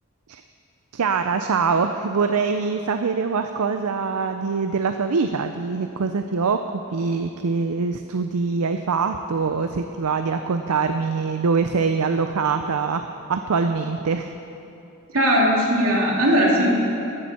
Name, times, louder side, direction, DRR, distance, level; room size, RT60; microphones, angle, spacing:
voice 1, 0.9-14.4, right 5 dB, 85° right, 7 dB, 0.5 m, -24 dB
voice 2, 15.1-16.7, equal, 70° right, -3 dB, 2.7 m, -18 dB
16.0 x 11.5 x 4.3 m, 2.8 s
head